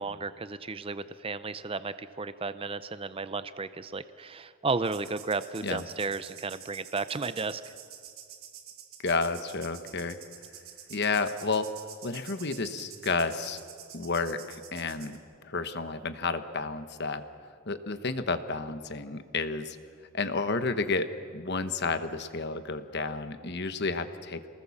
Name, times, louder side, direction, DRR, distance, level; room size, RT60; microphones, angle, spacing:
voice 1, 0.0-7.7, right 4 dB, 25° right, 13 dB, 0.5 m, -33 dB
sound 1, 4.8-15.2, right 9 dB, 75° right, 2.3 m, -48 dB
voice 2, 9.0-10.2 10.9-11.7 12.0-13.6 13.9-17.2 17.7-19.8 20.1-21.1 21.3-24.5, left 4 dB, 50° left, 10 dB, 1.2 m, -31 dB
27.0 x 19.5 x 7.2 m, 2.1 s
head